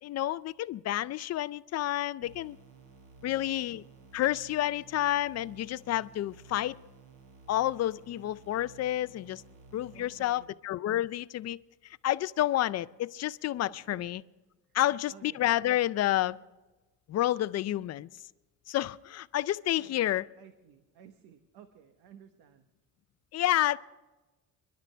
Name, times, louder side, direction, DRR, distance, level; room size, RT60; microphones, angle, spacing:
voice 1, 0.0-2.6 3.2-3.8 4.1-6.8 7.5-9.4 9.7-11.6 12.0-14.2 14.7-16.4 17.1-18.1 18.7-20.3 23.3-23.8, left 13 dB, 45° left, 0.4 m, -29 dB
sound 1, 2.2-10.2, right 3 dB, 65° right, 4.7 m, -54 dB
voice 2, 3.2-3.6 9.9-10.5 13.6-14.0 15.1-15.5 19.8-20.0 20.4-22.7, right 8 dB, 85° right, 1.2 m, -54 dB
29.0 x 11.5 x 3.3 m
cardioid pair, 145°, 38 cm